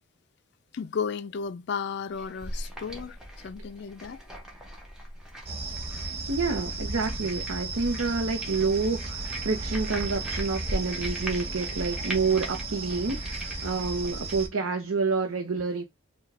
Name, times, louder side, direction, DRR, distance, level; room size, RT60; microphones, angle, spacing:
voice 1, 0.7-3.2 3.4-4.2, left 6 dB, 50° left, 0.3 m, -33 dB
sound 1, 2.1-14.5, equal, 5° right, 0.9 m, -40 dB
sound 2, 5.5-14.5, right 3 dB, 30° right, 0.8 m, -35 dB
voice 2, 6.3-15.8, right 4 dB, 70° right, 0.7 m, -28 dB
4.6 x 2.2 x 3.3 m
head